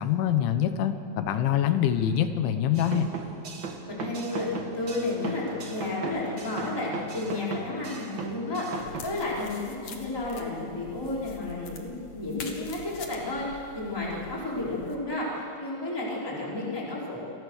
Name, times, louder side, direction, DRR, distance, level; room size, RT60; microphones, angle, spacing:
voice 1, 0.0-3.1, left 9 dB, 90° left, 9 dB, 3.7 m, -25 dB
sound 1, 2.7-9.0, right 4 dB, 65° right, 1.2 m, -38 dB
voice 2, 3.8-17.2, left 2 dB, 5° left, -5 dB, 4.5 m, -32 dB
sound 2, 4.1-10.8, left 6 dB, 70° left, 3.2 m, -46 dB
sound 3, 8.8-14.9, left 5 dB, 50° left, 2.5 m, -45 dB
29.5 x 23.0 x 6.6 m, 2.5 s
omnidirectional pair, 5.3 m